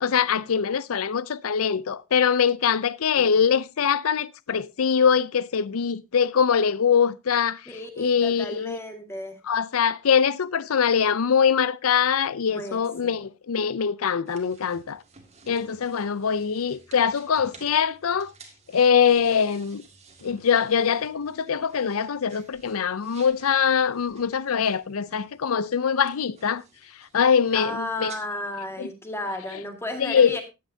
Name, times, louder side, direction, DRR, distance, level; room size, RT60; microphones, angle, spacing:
voice 1, 0.0-7.7 8.0-8.8 9.5-15.0 15.5-18.3 18.7-19.8 20.2-26.6 27.1-28.1 28.8-28.9 30.0-30.4, left 7 dB, 80° left, 0.5 m, -23 dB
voice 2, 7.7-9.4 12.5-12.8 27.5-30.4, left 1 dB, 10° left, 1.9 m, -33 dB
sound 1, 14.3-28.2, right 4 dB, 30° right, 2.0 m, -53 dB
14.5 x 10.0 x 2.8 m
head